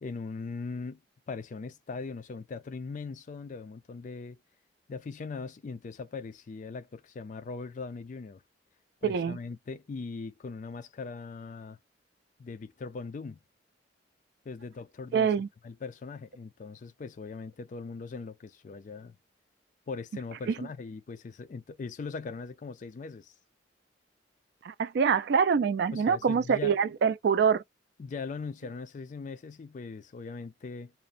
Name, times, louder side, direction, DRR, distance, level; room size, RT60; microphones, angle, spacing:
voice 1, 0.0-1.0 1.3-4.4 4.9-8.4 9.0-11.8 12.4-13.4 14.5-15.3 15.6-19.2 19.9-23.3 25.9-26.8 28.0-30.9, left 4 dB, 45° left, 0.3 m, -40 dB
voice 2, 9.0-9.4 15.1-15.5 20.5-20.6 24.6-27.6, right 6 dB, 60° right, 0.3 m, -25 dB
2.8 x 2.0 x 2.5 m
head